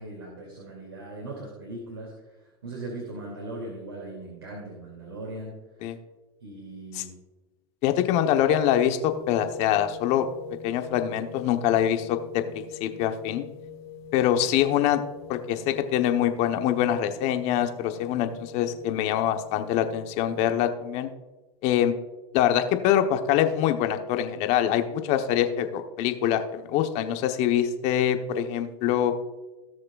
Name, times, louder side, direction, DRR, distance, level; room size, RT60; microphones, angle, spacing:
voice 1, 0.0-2.1 2.6-5.6 6.4-7.2, right 2 dB, 90° right, -2 dB, 2.7 m, -39 dB
voice 2, 7.8-10.2 10.6-13.4 14.1-15.0 15.3-21.1 21.6-22.0 22.3-29.1, left 10 dB, 55° left, 7 dB, 1.1 m, -24 dB
sound 1, 9.0-20.4, left 8 dB, 70° left, 1.6 m, -44 dB
18.0 x 6.5 x 2.4 m, 1.1 s
hypercardioid pair, 105°, 14 cm